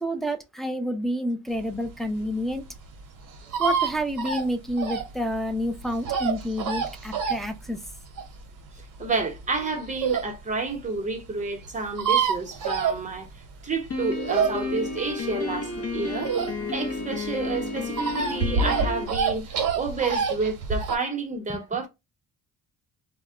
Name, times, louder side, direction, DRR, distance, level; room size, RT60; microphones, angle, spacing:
voice 1, 0.0-2.6 3.6-7.8 21.5-21.6, equal, ahead, 0.3 m, -29 dB
sound 1, 1.7-10.3 10.8-10.9 11.1-11.2 11.4-11.5 11.6-13.5 13.9-16.9 17.2-21.0, right 5 dB, 60° right, 0.7 m, -27 dB
voice 2, 9.0-13.3 13.6-16.3 16.7-21.9, right 4 dB, 20° right, 0.8 m, -30 dB
Piano, 13.9-19.0, left 3 dB, 40° left, 0.6 m, -31 dB
2.1 x 2.1 x 3.6 m
cardioid pair, 115°, 36 cm